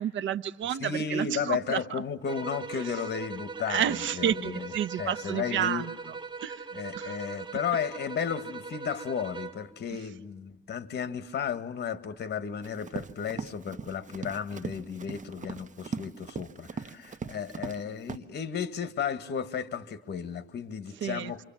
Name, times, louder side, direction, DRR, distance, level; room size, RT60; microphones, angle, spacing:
voice 1, 0.0-2.0 2.7-2.8 3.7-6.1 6.4-6.7 6.9-7.2 21.0-21.4, right 10 dB, 75° right, 1.1 m, -31 dB
voice 2, 0.8-4.7 5.0-5.8 6.7-21.4, left 7 dB, 60° left, 2.0 m, -34 dB
sound 1, 2.3-9.7, right 4 dB, 25° right, 2.4 m, -40 dB
Run, 12.6-17.8 18.1-18.2, right 5 dB, 40° right, 1.3 m, -39 dB
30.0 x 25.5 x 7.5 m
cardioid pair, 90°, 20 cm